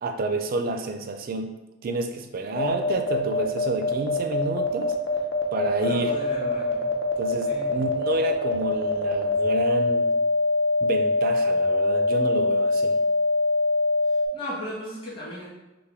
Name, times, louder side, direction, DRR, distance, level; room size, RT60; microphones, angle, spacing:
voice 1, 0.0-1.6 1.8-5.0 5.5-6.2 7.2-10.1 10.8-13.0, right 2 dB, 45° right, 6 dB, 0.4 m, -29 dB
sound 1, 2.6-14.3, left 3 dB, 60° left, 0.6 m, -23 dB
voice 2, 5.8-7.0 7.5-7.7 14.3-15.5, equal, 25° left, -8 dB, 1.5 m, -36 dB
5.5 x 2.1 x 3.4 m, 1.1 s
head